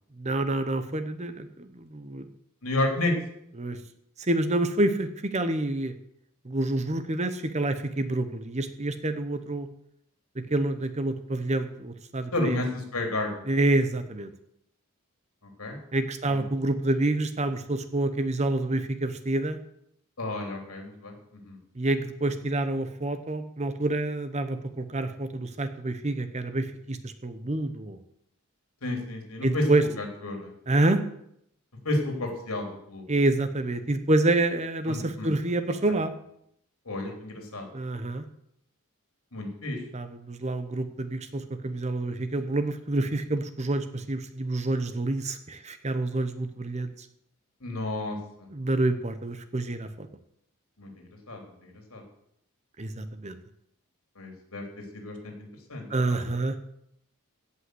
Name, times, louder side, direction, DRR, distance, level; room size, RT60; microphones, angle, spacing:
voice 1, 0.2-2.3 3.6-3.8 4.2-5.9 6.4-9.7 10.5-12.6 13.5-14.3 15.9-19.6 21.8-28.0 29.4-29.8 30.7-31.0 33.1-36.1 37.7-38.2 39.9-46.9 48.5-50.1 52.8-53.3 55.9-56.6, right 2 dB, 30° right, 10 dB, 0.9 m, -27 dB
voice 2, 2.6-3.1 12.3-13.4 15.6-15.8 16.3-16.4 20.2-21.6 28.8-29.7 30.0-30.5 31.8-33.1 34.8-35.3 36.8-37.7 39.3-39.8 47.6-48.5 50.8-52.0 54.2-56.2, left 2 dB, 75° left, 2 dB, 3.3 m, -32 dB
16.0 x 5.7 x 7.8 m, 0.74 s
head